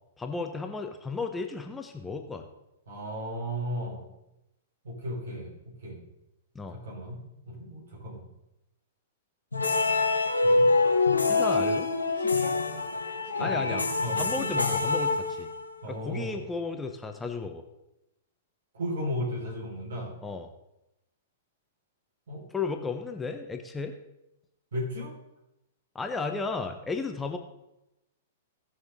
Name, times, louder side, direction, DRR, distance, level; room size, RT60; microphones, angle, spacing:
voice 1, 0.2-2.5 6.5-6.8 11.3-11.9 13.4-13.8 14.1-15.5 15.9-17.6 20.2-20.5 22.5-23.9 25.9-27.4, left 4 dB, 10° left, 5 dB, 1.0 m, -34 dB
voice 2, 2.9-4.1 4.8-5.5 5.8-6.0 6.7-8.2 10.4-10.7 11.5-11.6 12.2-12.6 13.3-13.7 14.0-14.5 15.8-16.4 18.7-20.1 22.3-22.5 24.7-25.1, equal, 65° right, -2 dB, 4.5 m, -35 dB
sound 1, 9.5-15.8, left 3 dB, 85° left, 1.4 m, -25 dB
17.5 x 6.3 x 3.8 m, 0.89 s
figure-of-eight pair, 105°, 0 cm